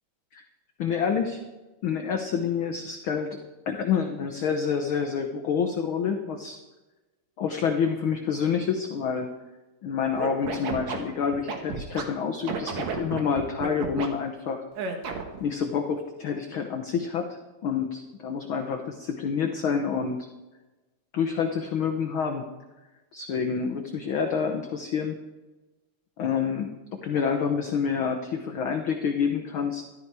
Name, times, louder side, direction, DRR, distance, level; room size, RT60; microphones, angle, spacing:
voice 1, 0.8-1.4 1.8-3.4 3.7-6.6 7.4-9.3 9.8-14.6 15.4-20.3 21.1-22.5 23.1-25.2 26.2-29.9, left 6 dB, 75° left, 5 dB, 1.2 m, -28 dB
Scratching (performance technique), 10.1-12.0 12.5-14.1 14.7-15.4, right 5 dB, 65° right, 2.5 m, -31 dB
13.5 x 12.5 x 4.7 m, 1.1 s
omnidirectional pair, 3.6 m